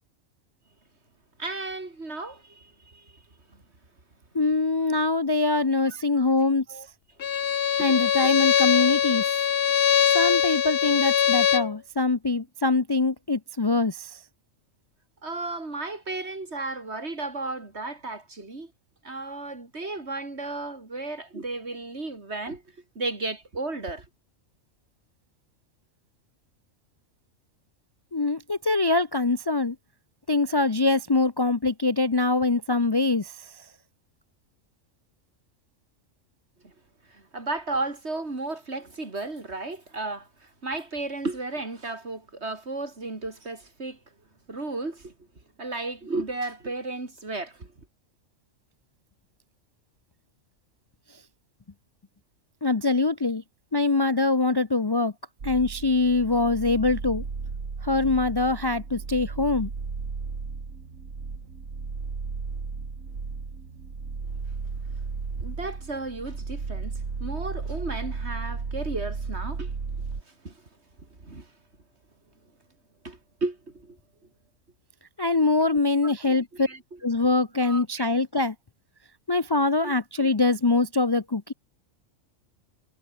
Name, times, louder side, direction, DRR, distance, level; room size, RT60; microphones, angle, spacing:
voice 1, 1.4-3.1 5.9-6.3 6.7-6.9 7.3-7.9 8.2-8.4 15.2-18.7 19.0-22.6 23.0-24.1 36.6-36.7 37.1-44.0 44.5-45.1 45.6-47.7 65.4-69.7 70.4-70.6 71.2-71.5 73.0-74.0 75.6-77.0 77.6-78.2 79.8-79.9, right 2 dB, 55° right, 3.8 m, -34 dB
voice 2, 4.3-6.6 7.8-9.4 10.1-14.2 28.1-29.8 30.3-33.5 52.6-53.4 53.7-55.1 55.4-57.2 57.8-59.7 75.2-76.7 77.0-78.5 79.3-81.5, left 3 dB, 25° left, 0.6 m, -23 dB
Bowed string instrument, 7.2-11.7, left 8 dB, 55° left, 1.0 m, -22 dB
sound 1, 55.4-70.2, right 4 dB, 80° right, 2.7 m, -34 dB
omnidirectional pair, 1.3 m